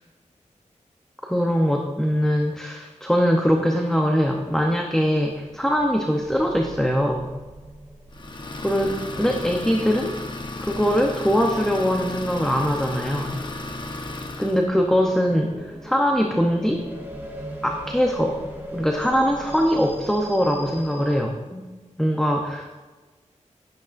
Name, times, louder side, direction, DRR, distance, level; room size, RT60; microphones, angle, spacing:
voice 1, 1.2-7.3 8.6-10.1 10.6-13.4 14.4-16.8 17.6-18.4 18.7-21.7 22.0-22.7, equal, 5° left, 1 dB, 0.8 m, -22 dB
sound 1, 5.0-21.1, equal, 15° right, 1.8 m, -41 dB
Idling, 8.1-14.7, left 2 dB, 35° left, 0.9 m, -34 dB
12.0 x 11.0 x 2.6 m, 1.3 s
wide cardioid pair, 135°, 13 cm